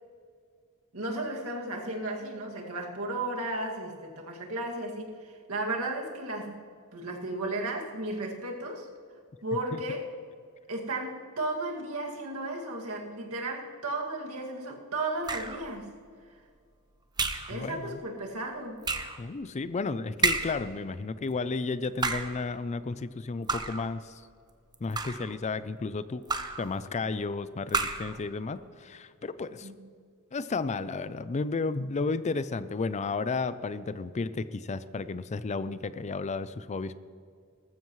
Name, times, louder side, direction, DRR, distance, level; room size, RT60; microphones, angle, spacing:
voice 1, 0.9-6.6 6.9-8.9 9.4-10.1 10.7-15.9 17.5-18.8 29.6-29.8, right 2 dB, 70° right, 0 dB, 2.2 m, -34 dB
sound 1, 15.3-15.7 17.2-17.6 18.8-19.2 20.2-20.7 21.8-22.4 23.5-23.9 24.7-25.3 26.3-26.7 27.7-28.2, right 3 dB, 20° right, 0.8 m, -30 dB
voice 2, 17.5-18.0 19.2-24.2 24.8-26.2 26.6-29.7 30.3-36.9, left 4 dB, 30° left, 14 dB, 0.4 m, -33 dB
19.0 x 14.5 x 3.2 m, 2.2 s
head